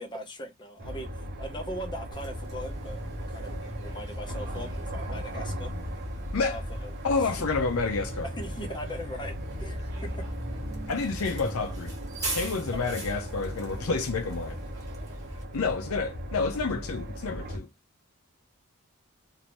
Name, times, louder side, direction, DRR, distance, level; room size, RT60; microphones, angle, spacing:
voice 1, 0.0-3.0 3.3-5.7 6.4-6.9 7.2-7.3 8.2-10.3 12.7-12.8, equal, 20° left, 0.9 m, -40 dB
sound 1, 0.8-17.6, equal, 45° right, 0.9 m, -37 dB
Bus, 2.1-15.4, right 1 dB, 15° right, 1.3 m, -40 dB
voice 2, 7.0-8.3 10.9-11.9 12.3-14.6 15.5-17.7, left 4 dB, 75° left, 0.6 m, -29 dB
2.8 x 2.6 x 3.0 m
head